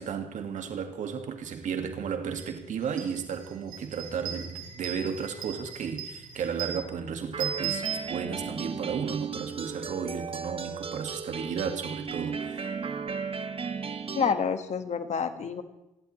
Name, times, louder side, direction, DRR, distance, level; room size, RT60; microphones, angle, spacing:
voice 1, 0.0-12.8, right 6 dB, 70° right, 1.9 m, -34 dB
sound 1, 2.4-2.5 2.8-8.7, right 8 dB, 85° right, 2.8 m, -38 dB
sound 2, 7.3-14.3, right 5 dB, 45° right, 1.3 m, -35 dB
voice 2, 14.1-15.6, left 6 dB, 60° left, 1.7 m, -28 dB
27.0 x 11.5 x 3.2 m
supercardioid pair, 60°, 13 cm